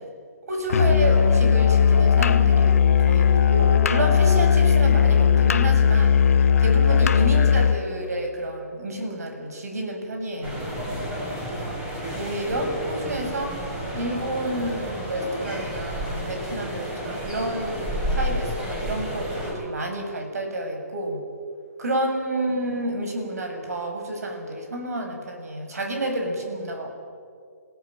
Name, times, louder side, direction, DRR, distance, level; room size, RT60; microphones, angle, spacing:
voice 1, 0.5-6.2 6.6-10.7 11.4-11.8 12.2-13.6 13.9-21.2 21.8-26.9, right 1 dB, 70° right, 3 dB, 7.5 m, -29 dB
Musical instrument, 0.7-7.8, left 7 dB, 60° left, 1.1 m, -18 dB
sound 1, 10.4-19.5, equal, 10° right, 5.8 m, -31 dB
27.0 x 17.5 x 9.2 m, 2.3 s
hypercardioid pair, 160°, 9 cm